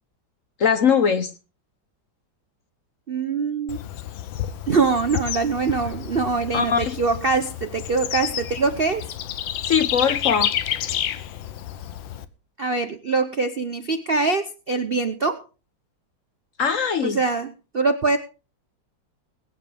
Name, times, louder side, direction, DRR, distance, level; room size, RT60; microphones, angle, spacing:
voice 1, 0.6-1.3 6.5-7.0 9.6-10.5 16.6-17.2, left 6 dB, 50° left, 1.1 m, -21 dB
voice 2, 3.1-3.8 4.7-9.0 12.6-15.4 17.0-18.2, right 4 dB, 50° right, 0.7 m, -23 dB
Bird / Insect, 3.7-12.2, left 11 dB, 80° left, 1.6 m, -30 dB
20.5 x 9.2 x 3.4 m
omnidirectional pair, 2.1 m